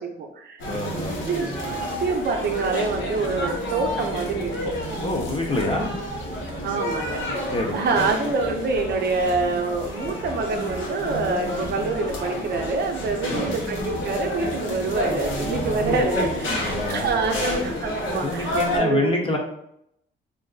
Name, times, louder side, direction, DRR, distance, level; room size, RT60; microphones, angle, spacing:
voice 1, 0.0-0.6 0.9-4.7 6.6-19.1, right 3 dB, 55° right, 3 dB, 0.5 m, -26 dB
sound 1, 0.6-18.8, equal, 75° left, 0.9 m, -30 dB
voice 2, 0.7-1.2 5.0-5.9 7.5-8.0 13.3-13.5 16.5-17.7 18.2-19.4, left 2 dB, 25° left, 0 dB, 0.7 m, -27 dB
3.4 x 2.5 x 2.3 m, 0.75 s
cardioid pair, 90°, 20 cm